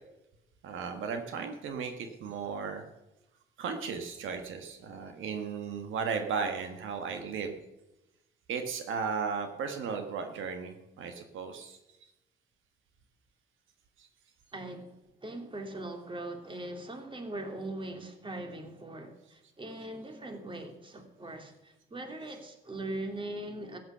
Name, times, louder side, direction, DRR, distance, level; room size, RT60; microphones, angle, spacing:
voice 1, 0.6-2.8 3.6-7.6 8.5-11.8 14.0-14.1, right 5 dB, 80° right, 6 dB, 1.5 m, -35 dB
voice 2, 14.5-14.9 15.2-23.8, right 1 dB, 25° right, 5 dB, 2.7 m, -40 dB
14.0 x 9.3 x 6.7 m, 0.94 s
cardioid pair, 90°, 20 cm